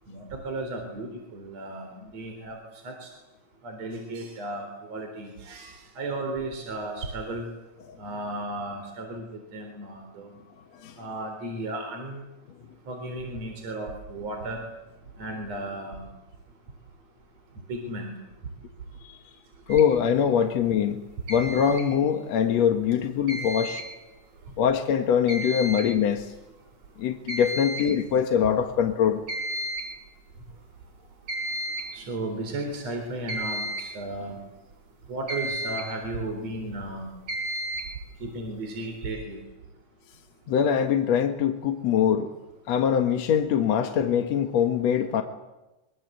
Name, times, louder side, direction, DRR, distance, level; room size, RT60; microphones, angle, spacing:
voice 1, 0.1-2.6 2.8-3.1 3.6-7.5 8.0-10.3 11.0-12.2 12.9-14.6 15.2-16.1 17.7-18.1 31.9-34.4 35.1-37.1 38.2-39.4, right 2 dB, 60° right, 3 dB, 5.1 m, -34 dB
voice 2, 19.7-21.0 21.3-23.8 24.6-26.3 27.0-29.2 40.5-42.3 42.7-45.2, left 8 dB, 65° left, 5 dB, 2.5 m, -23 dB
sound 1, 19.7-19.9 21.3-21.9 23.3-23.9 25.3-25.9 26.2-26.3 26.8-26.9 27.3-27.9 29.3-29.9 31.3-32.0 33.3-34.0 35.3-36.0 37.3-38.0, right 1 dB, 90° right, 4.5 m, -32 dB
24.5 x 23.0 x 8.1 m, 1.0 s
omnidirectional pair, 3.4 m